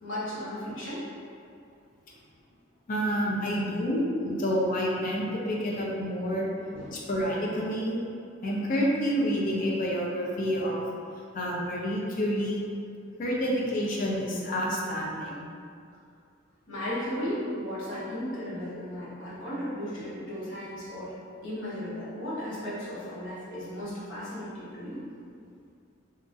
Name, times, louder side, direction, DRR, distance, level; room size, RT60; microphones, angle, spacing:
voice 1, 0.0-1.0 6.7-7.1 16.7-25.0, equal, 70° left, -9 dB, 1.0 m, -35 dB
voice 2, 2.9-6.5 6.9-8.0 8.4-10.8 11.3-12.6 13.2-15.5, equal, 45° left, -3 dB, 0.4 m, -28 dB
2.9 x 2.5 x 2.4 m, 2.4 s
head